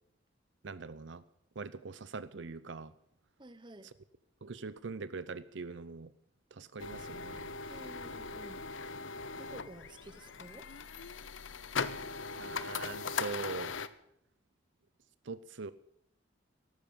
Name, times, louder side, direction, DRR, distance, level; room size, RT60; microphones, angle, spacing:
voice 1, 0.6-1.2 1.6-2.9 4.4-6.1 6.6-7.5 12.4-13.7 15.3-15.7, right 4 dB, 70° right, 16 dB, 0.6 m, -42 dB
voice 2, 3.4-3.9 7.7-8.6 9.3-10.7, right 1 dB, 25° right, 12 dB, 1.1 m, -51 dB
sound 1, 6.8-13.9, left 5 dB, 90° left, 0.9 m, -39 dB
14.0 x 12.0 x 8.6 m, 0.74 s
head